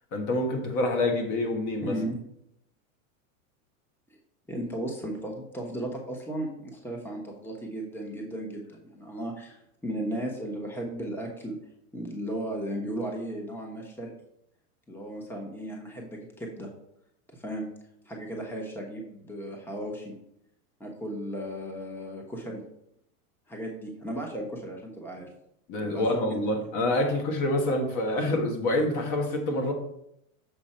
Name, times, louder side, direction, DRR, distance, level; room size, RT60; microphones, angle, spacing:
voice 1, 0.1-2.0 25.7-29.7, left 1 dB, 45° left, 2 dB, 1.7 m, -27 dB
voice 2, 1.8-2.2 4.5-11.6 11.9-14.1 14.9-16.7 17.3-17.7 18.0-20.1 20.8-22.6 23.5-25.3 25.8-26.4, right 1 dB, 5° left, 0 dB, 1.1 m, -35 dB
7.1 x 5.3 x 4.4 m, 0.80 s
supercardioid pair, 115°, 41 cm